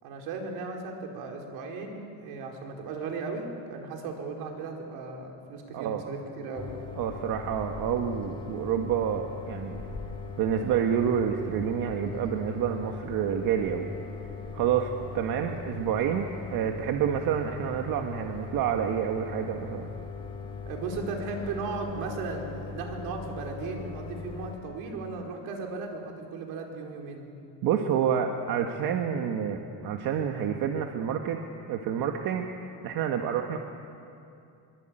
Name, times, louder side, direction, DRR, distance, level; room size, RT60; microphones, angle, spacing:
voice 1, 0.0-6.7 20.7-27.3, right 4 dB, 90° right, 1 dB, 4.8 m, -36 dB
sound 1, 6.5-24.6, left 5 dB, 15° left, 3.1 m, -40 dB
voice 2, 7.0-9.8 10.4-13.9 14.5-19.9 27.6-31.4 31.7-33.6, right 8 dB, 65° right, 3 dB, 1.7 m, -28 dB
24.0 x 23.0 x 9.1 m, 2.6 s
cardioid pair, 155°, 35 cm